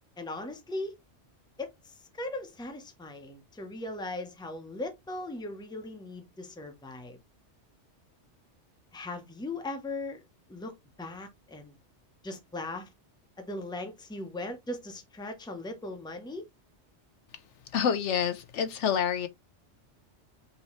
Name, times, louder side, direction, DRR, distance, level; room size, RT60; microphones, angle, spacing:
voice 1, 0.2-1.0 1.6-7.2 8.9-10.2 10.5-11.8 12.2-12.9 13.4-16.5, left 2 dB, 5° left, 0.7 m, -39 dB
voice 2, 17.7-19.3, left 8 dB, 80° left, 1.0 m, -27 dB
5.4 x 2.9 x 3.1 m
omnidirectional pair, 1.2 m